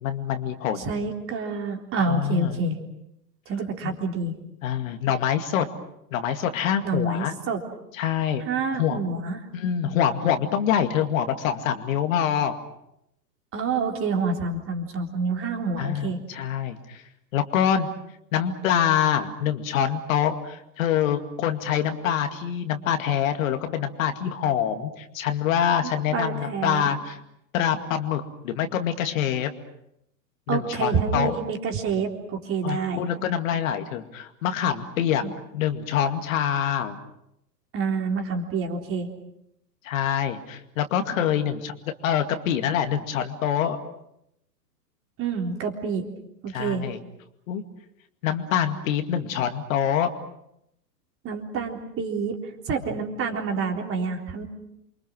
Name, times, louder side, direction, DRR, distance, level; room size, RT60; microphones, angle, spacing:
voice 1, 0.0-0.9 2.0-2.6 3.8-3.9 4.6-5.7 6.1-7.4 7.9-8.4 8.8-9.0 9.5-12.6 15.8-17.0 17.3-17.9 18.3-27.2 27.5-29.5 30.5-31.4 32.6-35.2 35.5-37.0 39.8-41.7 42.0-43.8 46.5-47.0 47.5-47.6 48.2-50.1, left 9 dB, 50° left, 7 dB, 2.3 m, -25 dB
voice 2, 0.8-2.8 3.5-4.4 6.8-7.6 8.5-9.4 13.5-16.2 26.1-26.9 30.5-33.1 35.2-35.3 37.7-39.1 45.2-46.1 46.4-46.9 51.2-52.4 52.7-54.5, right 4 dB, 25° right, 3 dB, 3.8 m, -27 dB
28.5 x 24.5 x 6.3 m, 0.80 s
hypercardioid pair, 115°, 50 cm